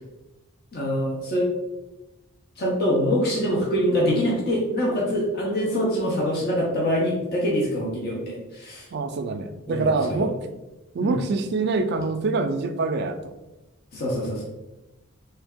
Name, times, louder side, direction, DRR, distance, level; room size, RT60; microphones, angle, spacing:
voice 1, 0.7-1.5 2.6-8.9 9.7-10.3 11.0-11.2 13.9-14.4, equal, 45° left, -4 dB, 0.8 m, -24 dB
voice 2, 8.9-10.3 10.9-13.3, right 3 dB, 50° right, 8 dB, 0.3 m, -25 dB
3.2 x 2.6 x 3.5 m, 1.0 s
head